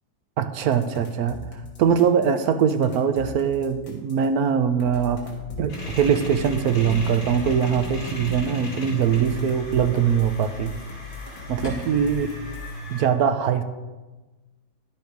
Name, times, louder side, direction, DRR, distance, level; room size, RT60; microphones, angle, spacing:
voice 1, 0.4-1.4 1.8-5.2 5.6-10.7 11.5-12.3 12.9-13.6, right 7 dB, 70° right, 9 dB, 0.9 m, -22 dB
sound 1, 0.7-4.3 4.8-8.5 9.0-12.8, left 4 dB, 70° left, 2.6 m, -39 dB
sound 2, 5.7-13.0, left 1 dB, 85° left, 4.1 m, -36 dB
11.0 x 7.6 x 5.1 m, 1.2 s
omnidirectional pair, 2.1 m